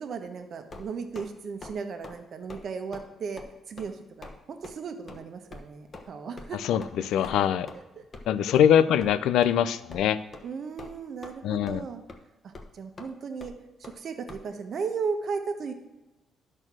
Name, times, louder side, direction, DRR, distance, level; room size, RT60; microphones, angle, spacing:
voice 1, 0.0-3.4 3.7-6.6 7.0-7.6 10.4-12.0 12.4-13.5 13.8-15.7, right 5 dB, 55° right, 7 dB, 1.1 m, -36 dB
sound 1, 0.7-1.3 1.6-1.8 2.0-2.2 2.5-2.7 2.9-3.1 3.4-3.5 3.8-3.9 4.2-4.4 4.6-4.7 5.1-5.2 5.5-5.6 5.9-6.1 6.4-6.5 6.8-6.9 7.2-7.4 7.7-7.8 8.1-8.3 8.5-8.7 9.0-9.1 9.4-9.5 9.9-10.0 10.3-10.5 10.8-11.4 11.7-11.8 12.1-12.2 12.5-12.7 13.0-13.1 13.4-13.5 13.8-14.0 14.3-14.4, left 2 dB, 35° left, 1.1 m, -43 dB
voice 2, 6.6-7.7 8.3-10.2 11.4-11.9, left 9 dB, 85° left, 15 dB, 0.4 m, -23 dB
11.0 x 4.4 x 6.1 m, 1.1 s
cardioid pair, 90°, 0 cm